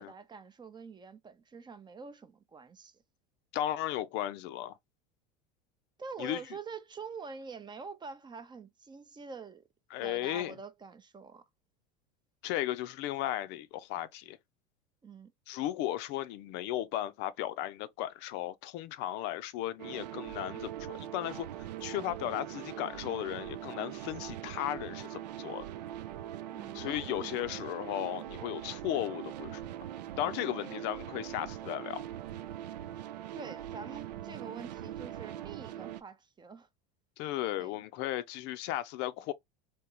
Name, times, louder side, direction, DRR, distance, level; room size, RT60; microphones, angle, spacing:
voice 1, 0.0-3.0 6.0-9.6 10.0-11.4 15.0-15.3 26.5-27.4 33.3-36.7 37.6-37.8, right 5 dB, 20° right, 0.6 m, -46 dB
voice 2, 3.5-4.8 6.2-6.4 9.9-10.5 12.4-14.4 15.5-25.6 26.7-29.6 30.2-32.0 37.2-39.3, left 13 dB, 55° left, 0.5 m, -35 dB
sound 1, 19.8-36.0, right 12 dB, 80° right, 0.4 m, -42 dB
3.5 x 2.9 x 2.8 m
hypercardioid pair, 85°, 21 cm